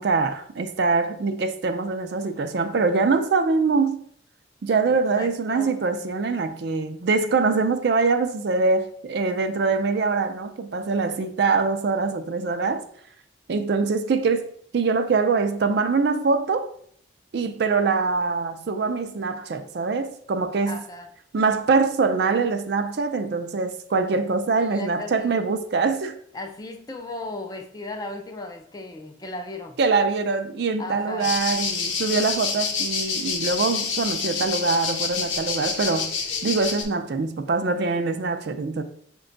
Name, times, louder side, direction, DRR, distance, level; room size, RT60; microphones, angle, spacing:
voice 1, 0.0-4.0 4.6-12.8 13.5-14.5 14.7-16.7 17.3-20.8 21.3-26.2 29.8-36.2 36.4-38.8, right 4 dB, 60° right, 0.4 m, -23 dB
voice 2, 5.2-5.8 20.7-21.1 24.6-25.4 26.3-29.8 30.8-31.3, left 2 dB, 20° left, 0.3 m, -36 dB
sound 1, 31.2-36.8, left 5 dB, 85° left, 0.7 m, -27 dB
5.9 x 2.2 x 3.8 m
head